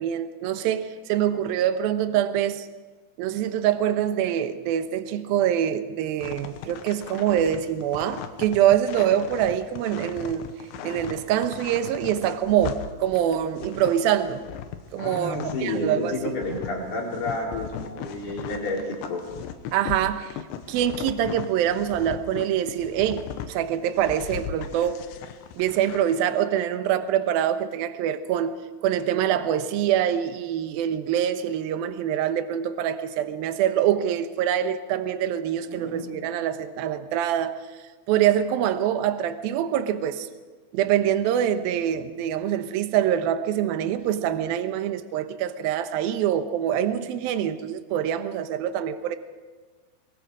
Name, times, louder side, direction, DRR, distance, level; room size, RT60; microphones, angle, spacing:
voice 1, 0.0-2.7 3.2-10.5 10.8-14.4 14.9-16.4 19.7-20.4 20.7-25.0 25.5-37.6 38.1-40.3 40.7-49.2, right 10 dB, 70° right, 2.4 m, -25 dB
sound 1, 6.2-15.7 16.0-23.5 23.9-26.1, left 9 dB, 85° left, 3.4 m, -38 dB
voice 2, 15.0-19.2 35.6-36.0, left 2 dB, 60° left, 6.3 m, -30 dB
24.5 x 23.0 x 5.0 m
omnidirectional pair, 5.1 m